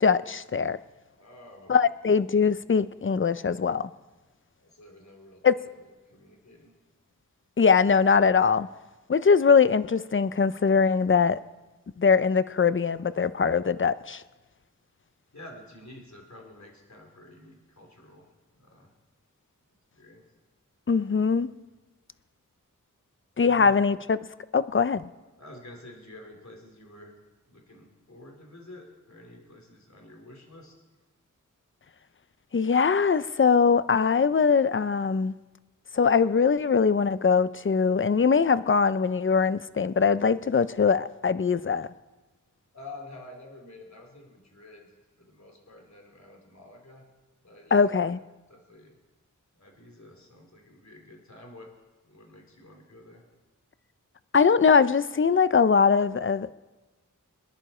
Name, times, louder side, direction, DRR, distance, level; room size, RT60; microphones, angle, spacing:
voice 1, 0.0-0.8 1.7-3.9 5.4-5.5 7.6-8.7 9.1-11.4 12.0-14.2 20.9-21.5 23.4-24.2 24.5-25.0 32.5-35.3 35.9-41.9 47.7-48.2 54.3-56.5, left 5 dB, 40° left, 0.6 m, -22 dB
voice 2, 1.2-1.9 4.6-5.4 5.8-6.7 15.3-18.3 18.5-18.9 19.9-20.2 23.4-23.7 25.4-27.2 27.5-30.7 42.7-44.9 45.2-47.0 47.4-48.1 48.5-49.0 49.6-51.7 52.0-53.3, left 2 dB, 55° left, 3.5 m, -49 dB
26.0 x 10.5 x 4.4 m
wide cardioid pair, 55°, 33 cm